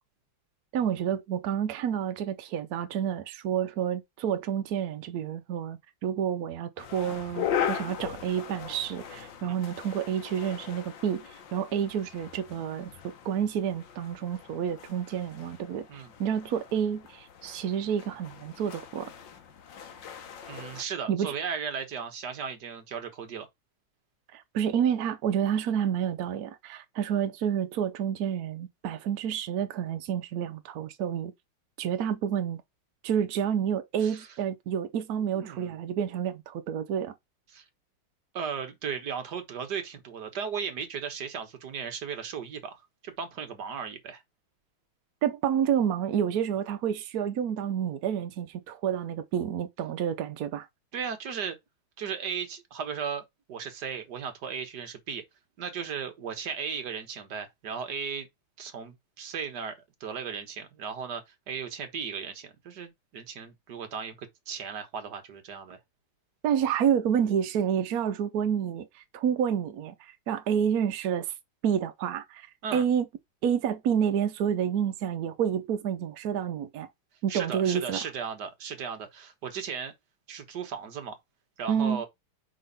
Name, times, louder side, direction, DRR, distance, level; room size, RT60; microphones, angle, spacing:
voice 1, 0.7-19.1 21.1-21.3 24.3-31.3 31.8-32.6 33.0-37.1 45.2-50.7 66.4-71.3 71.6-73.1 73.4-76.9 77.2-78.1 81.7-82.0, right 8 dB, 70° right, 0.9 m, -29 dB
sound 1, 6.8-20.8, left 8 dB, 65° left, 1.6 m, -39 dB
voice 2, 20.5-23.5 34.0-34.3 35.3-35.7 37.5-37.6 38.3-44.2 50.9-51.6 52.0-53.2 53.5-55.2 55.6-58.3 58.6-59.7 60.0-65.8 72.6-72.9 77.3-79.9 80.3-81.1 81.6-82.1, right 6 dB, 55° right, 1.7 m, -36 dB
5.2 x 3.9 x 5.3 m
omnidirectional pair, 2.3 m